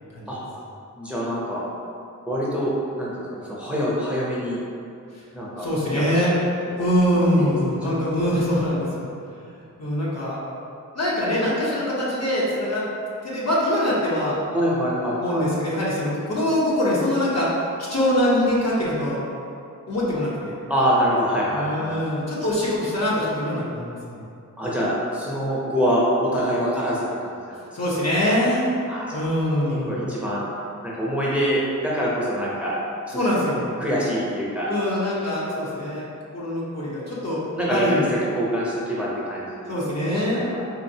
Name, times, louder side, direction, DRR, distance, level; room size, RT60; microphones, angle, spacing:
voice 1, 0.9-1.6 2.3-3.1 3.5-4.6 5.3-6.0 7.3-7.8 14.5-15.4 20.7-22.0 24.6-27.6 28.9-29.2 29.7-30.4 30.8-32.8 33.1-33.2 33.8-34.7 37.6-38.0 38.3-39.8 40.2-40.6, equal, 5° right, -6 dB, 0.7 m, -25 dB
voice 2, 5.6-6.3 6.8-9.1 9.4-10.4 10.9-12.8 13.2-14.4 15.2-17.5 17.9-19.2 19.9-20.5 21.5-24.2 27.7-28.7 29.1-30.0 33.1-33.7 34.7-36.1 36.3-37.4 37.7-38.1 39.7-40.5, left 1 dB, 50° left, -7 dB, 1.0 m, -23 dB
4.2 x 2.5 x 2.7 m, 2.5 s
wide cardioid pair, 55°, 33 cm